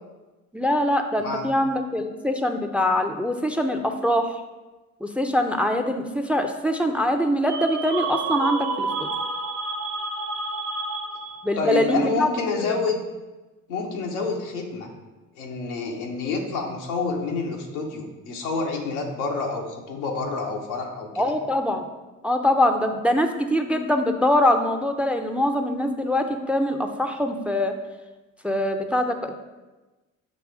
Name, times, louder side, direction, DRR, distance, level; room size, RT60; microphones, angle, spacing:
voice 1, 0.5-4.4 5.0-8.9 11.4-12.3 12.6-12.7 21.2-21.9 22.2-27.7 28.4-29.3, left 1 dB, 5° right, 6 dB, 0.5 m, -23 dB
sound 1, 7.4-11.6, right 3 dB, 45° right, 0.7 m, -29 dB
voice 2, 11.6-13.0 13.7-14.9 15.4-21.1, left 4 dB, 90° left, 1 dB, 0.9 m, -28 dB
6.4 x 3.1 x 4.9 m, 1.2 s
hypercardioid pair, 55°, 42 cm